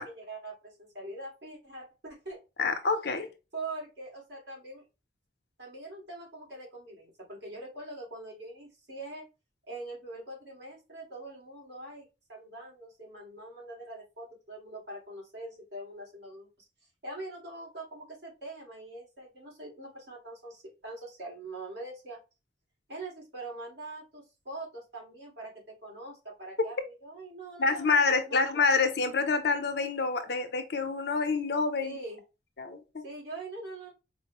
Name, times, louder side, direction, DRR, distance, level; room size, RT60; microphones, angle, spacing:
voice 1, 0.0-2.8 3.5-4.8 5.6-9.2 9.7-16.5 17.0-22.2 22.9-28.4 31.8-32.2 33.0-33.9, right 2 dB, 70° right, 1.9 m, -43 dB
voice 2, 2.6-3.3 27.6-32.0 32.6-33.0, left 4 dB, 60° left, 0.7 m, -27 dB
4.5 x 2.1 x 2.9 m
head